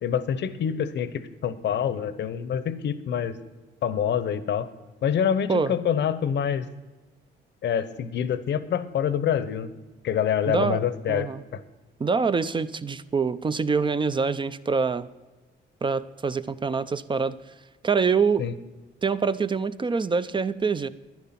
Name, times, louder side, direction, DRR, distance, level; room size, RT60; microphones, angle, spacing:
voice 1, 0.0-3.4 3.8-4.7 5.0-6.7 7.6-9.7 10.0-11.6 18.4-18.5, left 8 dB, 65° left, 14 dB, 0.9 m, -26 dB
voice 2, 10.5-10.8 11.1-11.4 12.0-15.1 15.8-17.4 17.8-18.4 19.0-20.9, right 5 dB, 25° right, 14 dB, 0.5 m, -25 dB
10.5 x 10.5 x 5.8 m, 1.2 s
cardioid pair, 90°, 20 cm